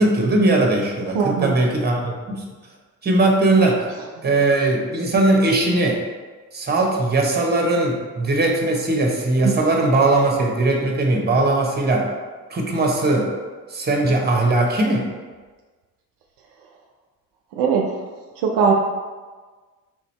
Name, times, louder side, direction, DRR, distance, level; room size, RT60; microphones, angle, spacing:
voice 1, 0.0-2.4 3.0-3.8 4.2-6.0 6.5-12.1 12.5-13.3 13.7-15.1, right 2 dB, 20° right, 1 dB, 0.9 m, -19 dB
voice 2, 1.1-1.6 9.4-9.6 17.5-18.0 18.4-18.7, right 6 dB, 70° right, 1 dB, 0.6 m, -19 dB
3.6 x 2.7 x 3.1 m, 1.4 s
hypercardioid pair, 50°, 44 cm